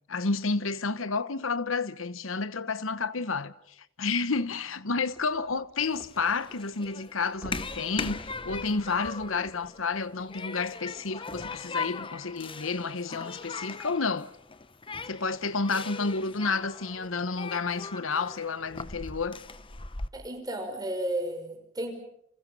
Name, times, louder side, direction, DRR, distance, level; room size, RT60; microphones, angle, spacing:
voice 1, 0.1-3.5 4.0-14.3 15.1-19.4, left 4 dB, 85° left, 1.1 m, -30 dB
sound 1, 5.1-6.6 6.9-7.0 7.4-9.9 10.6-10.7, equal, 5° right, 3.1 m, -45 dB
Human group actions, 5.8-20.1, left 4 dB, 25° left, 1.0 m, -40 dB
voice 2, 20.1-21.9, right 1 dB, 20° right, 5.5 m, -33 dB
29.0 x 28.5 x 5.6 m
head